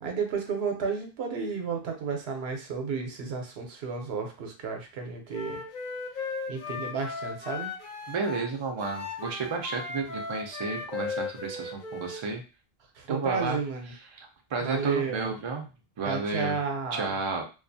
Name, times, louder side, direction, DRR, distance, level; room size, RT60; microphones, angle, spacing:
voice 1, 0.0-5.6 6.5-7.7 13.0-13.9 14.6-15.3 16.1-17.1, right 5 dB, 80° right, 3 dB, 0.9 m, -32 dB
Wind instrument woodwind instrument, 5.3-8.5 8.8-12.2, left 4 dB, 55° left, 0.8 m, -36 dB
voice 2, 8.1-12.4 13.1-13.6 14.1-15.7 16.0-16.6 16.9-17.4, right 4 dB, 45° right, 3 dB, 0.4 m, -32 dB
2.4 x 2.3 x 2.6 m, 0.32 s
omnidirectional pair, 1.0 m